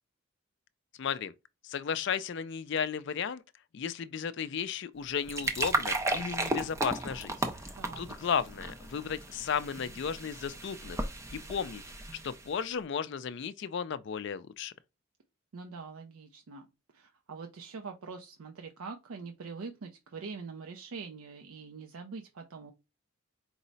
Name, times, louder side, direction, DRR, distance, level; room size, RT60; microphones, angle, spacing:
voice 1, 1.0-1.3 1.6-3.4 3.7-7.3 8.0-11.1 11.3-11.8 12.2-14.7, left 7 dB, 55° left, 0.3 m, -34 dB
sound 1, 5.0-12.6, right 2 dB, 15° right, 0.4 m, -35 dB
voice 2, 7.8-8.1 15.5-16.7 16.9-22.7, right 4 dB, 80° right, 0.5 m, -44 dB
4.6 x 2.0 x 3.9 m
head